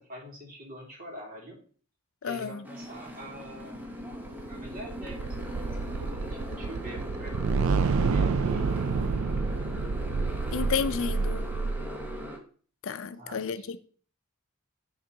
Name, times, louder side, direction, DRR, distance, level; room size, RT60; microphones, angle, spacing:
voice 1, 0.0-1.6 2.2-3.9 4.5-8.7 13.2-13.7, equal, 40° right, 2.6 m, -45 dB
voice 2, 2.2-2.7 10.5-11.5 12.8-13.8, left 6 dB, 65° left, 0.5 m, -31 dB
Motorcycle, 2.6-12.4, equal, 10° right, 1.0 m, -40 dB
sound 1, 3.8-12.2, right 4 dB, 75° right, 0.4 m, -29 dB
10.0 x 3.8 x 3.9 m
head